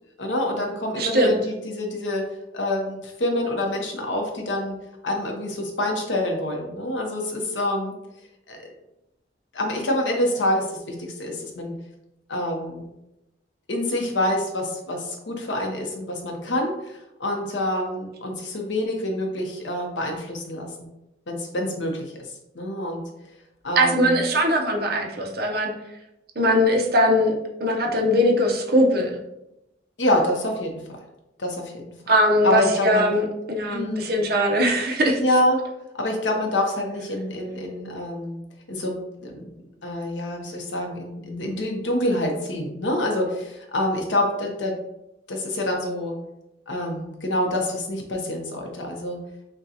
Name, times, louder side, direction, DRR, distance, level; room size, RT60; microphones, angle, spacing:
voice 1, 0.2-2.2 2.5-4.8 5.0-7.9 8.5-8.6 9.5-11.8 12.3-12.9 13.7-20.9 21.3-22.1 22.5-23.0 23.6-24.2 30.0-30.8 31.4-31.7 32.4-33.1 33.7-34.1 35.2-35.6 35.9-38.4 38.7-39.0 39.2-39.5 39.8-44.7 45.3-46.2 46.7-49.2, left 1 dB, 75° left, 2 dB, 0.9 m, -26 dB
voice 2, 1.0-1.4 23.8-25.7 26.4-27.3 27.6-29.2 32.1-35.2, equal, 55° right, 1 dB, 0.7 m, -20 dB
6.3 x 2.3 x 2.8 m, 0.89 s
head